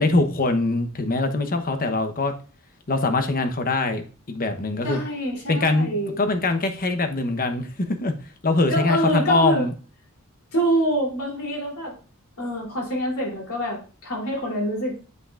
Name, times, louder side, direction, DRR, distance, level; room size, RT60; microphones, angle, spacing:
voice 1, 0.0-2.3 2.9-5.0 5.5-7.7 8.0-8.1 8.4-9.7, left 2 dB, 40° left, 8 dB, 0.9 m, -23 dB
voice 2, 4.8-6.2 8.7-9.7 10.5-11.9 12.4-15.0, right 1 dB, 80° left, -2 dB, 3.2 m, -25 dB
7.9 x 5.8 x 2.4 m, 0.36 s
head